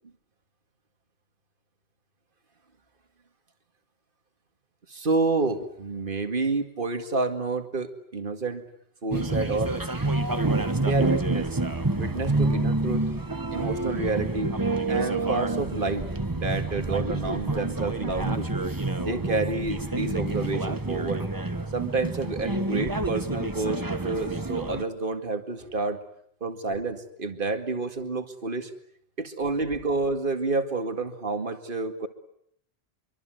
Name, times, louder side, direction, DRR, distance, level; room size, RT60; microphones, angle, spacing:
voice 1, 4.9-8.6 9.0-9.8 10.8-11.5 12.0-13.0 13.5-14.5 14.9-18.5 19.0-21.2 21.7-26.0 26.4-28.7 29.2-32.1, right 3 dB, 55° right, 8 dB, 2.2 m, -29 dB
sound 1, 9.1-24.8, right 2 dB, 20° right, 1.3 m, -28 dB
25.5 x 24.0 x 9.2 m, 0.71 s
omnidirectional pair, 1.1 m